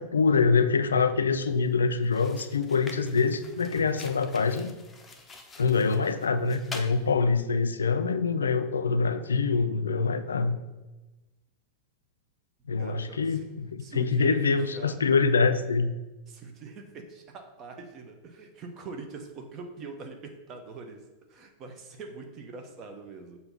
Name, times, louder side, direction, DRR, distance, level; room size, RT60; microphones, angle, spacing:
voice 1, 0.0-4.8 5.6-10.6 12.7-15.9, left 4 dB, 70° left, 11 dB, 0.4 m, -25 dB
sound 1, 1.4-1.6 2.0-7.0, left 3 dB, 15° left, 0.7 m, -46 dB
voice 2, 12.8-13.4 13.8-15.0 16.3-23.4, right 4 dB, 35° right, 4 dB, 0.9 m, -43 dB
6.7 x 2.8 x 5.6 m, 1.1 s
figure-of-eight pair, 90°, 0 cm